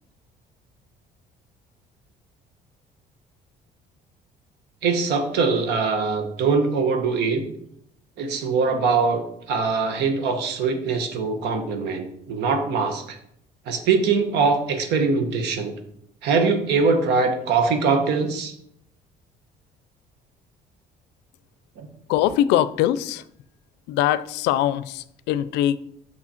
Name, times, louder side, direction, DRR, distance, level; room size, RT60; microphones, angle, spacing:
voice 1, 4.8-7.4 8.2-13.0 13.7-15.7 16.2-18.5 21.8-21.9, right 4 dB, 80° right, 1.3 m, -22 dB
voice 2, 22.1-23.2 23.9-25.8, left 12 dB, 90° left, 0.4 m, -22 dB
6.2 x 6.1 x 4.3 m
cardioid pair, 110°, 17 cm